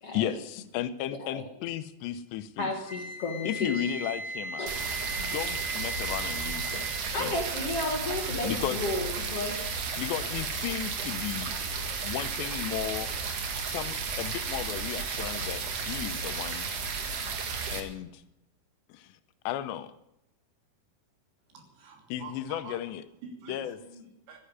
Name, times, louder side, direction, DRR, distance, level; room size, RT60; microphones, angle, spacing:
voice 1, 0.1-2.7 3.4-4.7 5.2-6.9 7.2-7.3 8.4-8.8 10.0-11.5 12.0-13.1 13.6-16.7 17.7-18.2 18.9-19.2 19.5-19.9 22.1-23.0 23.5-23.8, left 11 dB, 85° left, 13 dB, 3.0 m, -34 dB
voice 2, 2.6-3.8 4.6-4.7 7.1-9.6, left 2 dB, 50° left, 1 dB, 2.0 m, -32 dB
Wind instrument woodwind instrument, 2.8-7.0, right 1 dB, ahead, 4.2 m, -37 dB
sound 1, 4.7-17.8, right 5 dB, 50° right, 2.1 m, -33 dB
voice 3, 21.5-22.8 23.2-24.5, right 5 dB, 80° right, 3 dB, 5.1 m, -47 dB
13.5 x 10.0 x 9.5 m, 0.82 s
omnidirectional pair, 5.0 m